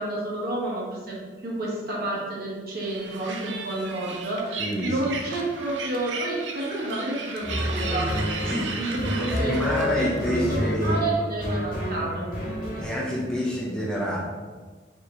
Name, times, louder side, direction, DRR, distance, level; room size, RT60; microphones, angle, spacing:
voice 1, 0.0-8.1 8.8-9.5 10.0-12.3, right 2 dB, 60° right, -4 dB, 1.1 m, -30 dB
sound 1, 2.8-10.3, right 4 dB, 80° right, 0.5 m, -36 dB
voice 2, 4.6-5.2 8.4-11.1 12.8-14.2, equal, 5° left, -5 dB, 0.6 m, -28 dB
sound 2, 7.4-12.8, left 1 dB, 50° left, 1.0 m, -29 dB
4.8 x 2.8 x 3.0 m, 1.4 s
head